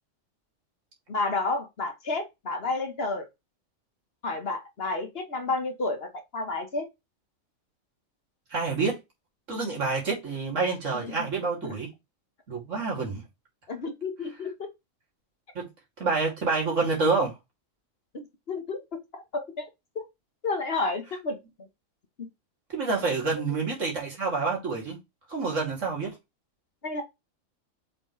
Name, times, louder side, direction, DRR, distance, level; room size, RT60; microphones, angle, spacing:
voice 1, 1.1-3.3 4.2-6.9 11.0-11.3 11.6-11.7 13.7-14.5 18.1-18.8 19.1-19.7 19.9-20.0 20.4-21.4 22.2-22.3 26.8-27.0, left 3 dB, 50° left, 1.4 m, -31 dB
voice 2, 8.5-9.0 9.5-11.9 12.5-13.2 15.5-15.7 16.0-17.3 22.7-25.0 25.3-26.2, right 4 dB, 70° right, 3.0 m, -28 dB
7.5 x 4.1 x 3.2 m
omnidirectional pair, 1.4 m